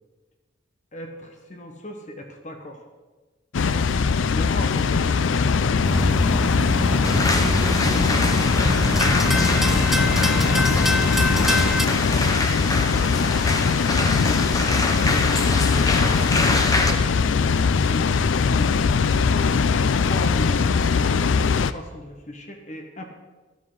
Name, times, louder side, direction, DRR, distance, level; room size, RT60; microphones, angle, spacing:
voice 1, 0.9-2.8 4.3-5.8 9.0-14.1 14.8-17.4 17.8-23.0, left 1 dB, 40° left, 3 dB, 1.3 m, -37 dB
Water, 3.5-21.7, left 5 dB, 85° left, 0.5 m, -21 dB
voice 2, 3.6-4.1 6.4-8.6, right 1 dB, 45° right, -4 dB, 3.3 m, -40 dB
sound 1, 5.8-11.9, equal, ahead, 0.4 m, -24 dB
sound 2, 7.0-16.9, left 2 dB, 20° left, 0.9 m, -26 dB
12.5 x 12.5 x 3.9 m, 1.2 s
head